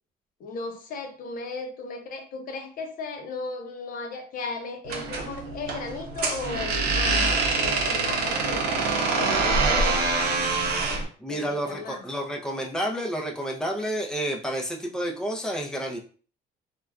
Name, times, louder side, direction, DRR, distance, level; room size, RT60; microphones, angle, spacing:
voice 1, 0.4-10.2 11.3-12.0, left 3 dB, 55° left, 4 dB, 0.7 m, -36 dB
sound 1, 4.8-11.1, right 3 dB, 70° right, 0.7 m, -25 dB
voice 2, 11.2-16.0, equal, 5° left, 0 dB, 0.6 m, -30 dB
3.3 x 2.3 x 2.3 m, 0.40 s
cardioid pair, 110°, 17 cm